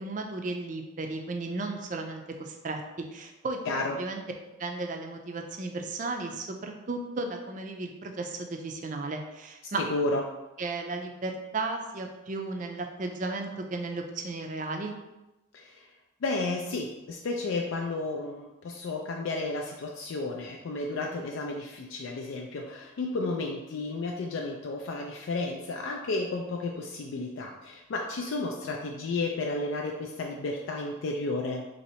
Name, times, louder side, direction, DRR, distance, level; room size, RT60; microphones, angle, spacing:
voice 1, 0.0-2.8 3.1-3.6 3.9-4.2 4.6-9.8 10.6-14.9, right 3 dB, 40° right, 4 dB, 0.4 m, -34 dB
voice 2, 3.7-4.0 9.8-10.2 15.5-15.9 16.2-31.6, left 2 dB, 70° left, 1 dB, 0.4 m, -32 dB
2.9 x 2.8 x 4.2 m, 0.99 s
head